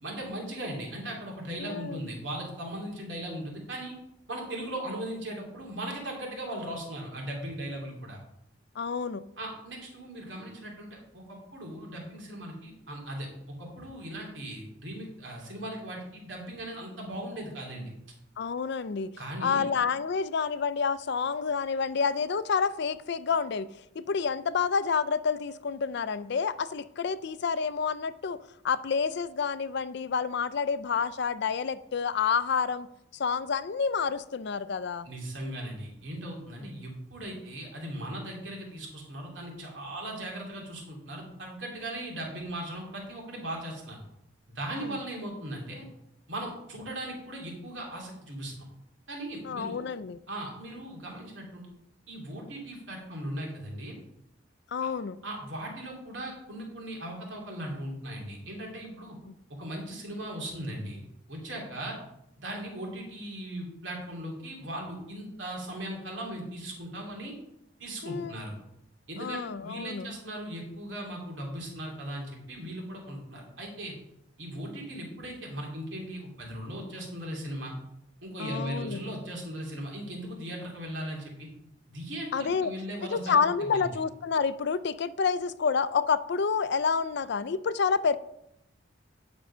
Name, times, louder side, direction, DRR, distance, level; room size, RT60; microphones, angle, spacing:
voice 1, 0.0-3.9 4.3-8.2 9.4-17.9 19.2-19.6 35.0-44.0 44.5-45.8 46.3-48.6 49.1-49.8 50.3-51.7 52.1-54.0 55.2-59.2 59.6-61.0 61.3-62.0 62.4-67.3 67.8-68.6 69.1-73.9 74.4-77.7 78.2-81.5 81.9-83.9, right 1 dB, 75° right, -1 dB, 2.9 m, -38 dB
voice 2, 1.6-2.0 8.8-9.2 18.4-19.1 19.4-28.4 28.6-32.9 33.1-35.1 44.7-45.0 49.4-50.2 54.7-55.2 59.3-59.4 68.0-68.3 69.2-70.1 78.4-79.0 82.3-82.7 83.1-88.2, left 5 dB, 60° left, 15 dB, 0.5 m, -29 dB
9.5 x 6.1 x 5.5 m, 0.81 s
head